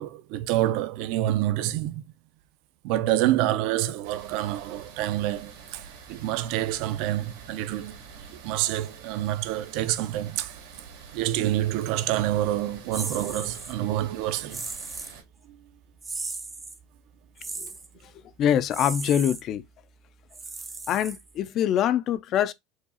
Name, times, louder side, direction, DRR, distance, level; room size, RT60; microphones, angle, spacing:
voice 1, 0.0-2.1 2.8-8.0 8.3-10.6 11.1-14.7 15.5-15.6, right 14 dB, 60° right, 0.5 m, -27 dB
sound 1, 4.0-15.2, right 6 dB, 85° right, 1.9 m, -47 dB
sound 2, 12.9-13.7 14.5-15.2 16.0-16.8 17.4-17.9 18.7-19.4 20.3-21.5, right 3 dB, 15° right, 0.6 m, -36 dB
voice 2, 18.4-19.6 20.9-22.5, left 10 dB, 40° left, 0.4 m, -24 dB
4.7 x 2.4 x 4.2 m
cardioid pair, 165°, 0 cm